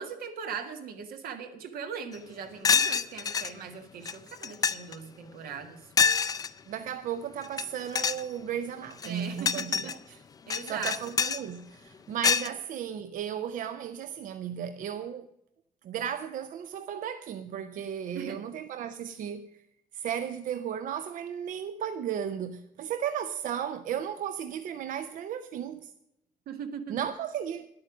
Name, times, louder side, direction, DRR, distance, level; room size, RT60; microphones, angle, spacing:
voice 1, 0.0-5.8 9.0-10.9 18.1-18.4 26.5-27.0, right 6 dB, 85° right, 1.7 m, -40 dB
sound 1, 2.1-2.2 2.6-3.5 4.0-4.1 4.4-4.9 6.0-6.5 7.4-7.6 7.9-8.2 8.9-9.9 10.5-11.4 12.2-12.5, left 6 dB, 25° left, 0.4 m, -26 dB
voice 2, 6.7-10.2 10.6-15.3 15.8-19.5 19.9-25.9 26.9-27.7, right 9 dB, 65° right, 0.6 m, -35 dB
11.0 x 8.7 x 6.1 m
cardioid pair, 170°, 15 cm